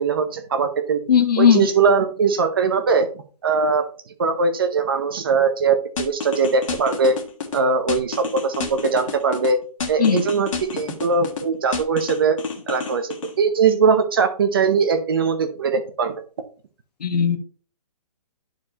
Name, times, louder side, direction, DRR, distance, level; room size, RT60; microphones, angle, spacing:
voice 1, 0.0-1.0 1.4-3.1 3.4-3.8 4.2-7.2 7.5-9.6 9.9-12.4 12.7-16.2, right 5 dB, 35° right, 0.8 m, -20 dB
voice 2, 1.1-1.6 10.0-10.2 17.0-17.4, left 7 dB, 70° left, 1.3 m, -17 dB
sound 1, 6.0-7.6 7.9-9.5 9.8-11.4 11.7-13.3, left 5 dB, 50° left, 1.4 m, -29 dB
11.0 x 4.7 x 2.9 m
hypercardioid pair, 175°, 21 cm